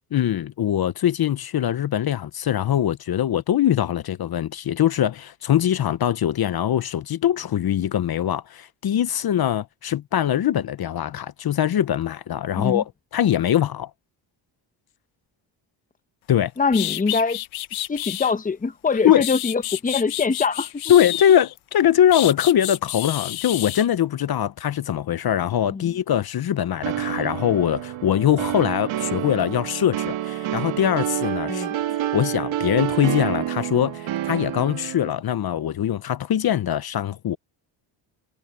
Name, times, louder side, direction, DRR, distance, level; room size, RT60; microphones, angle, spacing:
voice 1, 0.1-13.9 16.3-16.5 19.0-19.2 20.9-31.7 32.1-37.4, left 10 dB, 50° left, 0.9 m, -22 dB
sound 1, 16.3-16.4 16.7-18.3 18.9-21.6 22.1-23.9, left 15 dB, 85° left, 1.2 m, -30 dB
voice 2, 16.6-17.4 17.9-20.7 25.7-25.9 31.5-31.8, left 4 dB, 15° left, 0.9 m, -23 dB
sound 2, 26.8-35.1, right 12 dB, 80° right, 2.6 m, -28 dB
cardioid pair, 80°, 46 cm